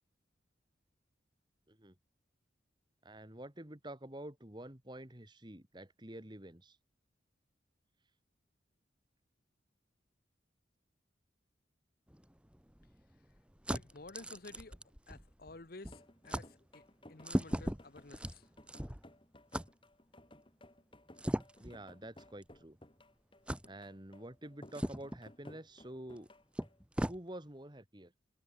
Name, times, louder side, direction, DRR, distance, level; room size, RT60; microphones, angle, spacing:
voice 1, 3.0-6.8 21.6-22.8 23.6-26.3 27.0-28.1, right 1 dB, 25° right, 2.2 m, -48 dB
sound 1, 12.1-15.6 15.8-16.0 16.3-16.5 17.2-19.1 19.5-19.7 21.2-21.7 22.4-22.5 23.5-23.7 24.7-25.2 26.2-26.3 26.5-27.2, equal, 5° right, 1.1 m, -38 dB
voice 2, 13.7-14.8 15.1-18.5, left 3 dB, 50° left, 1.1 m, -52 dB
sound 2, 15.9-26.8, left 1 dB, 25° left, 4.2 m, -59 dB
head